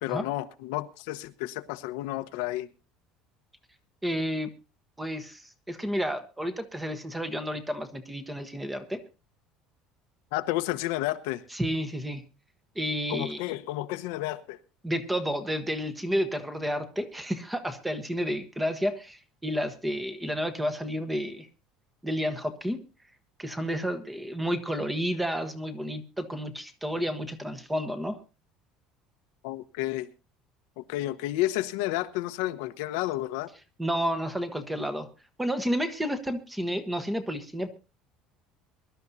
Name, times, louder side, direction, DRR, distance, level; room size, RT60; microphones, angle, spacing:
voice 1, 0.0-2.7 10.3-11.4 13.1-14.6 29.4-30.1 30.8-33.5, left 16 dB, 85° left, 1.0 m, -31 dB
voice 2, 4.0-4.5 5.0-9.0 11.5-12.2 12.7-13.4 14.8-21.5 22.0-22.8 23.4-28.2 33.8-35.1 35.4-37.7, equal, 5° right, 1.1 m, -31 dB
23.5 x 12.5 x 2.7 m
cardioid pair, 175°, 0 cm